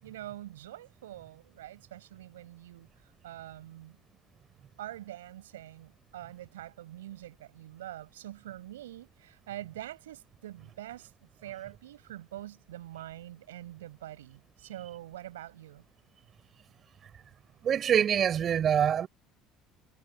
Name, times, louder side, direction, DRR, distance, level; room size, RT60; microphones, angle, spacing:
voice 1, 0.0-2.9 3.2-4.0 4.8-11.1 11.4-15.8, right 13 dB, 90° right, 5.8 m, -45 dB
voice 2, 17.6-19.1, right 9 dB, 45° right, 5.5 m, -25 dB
hypercardioid pair, 70°, 0 cm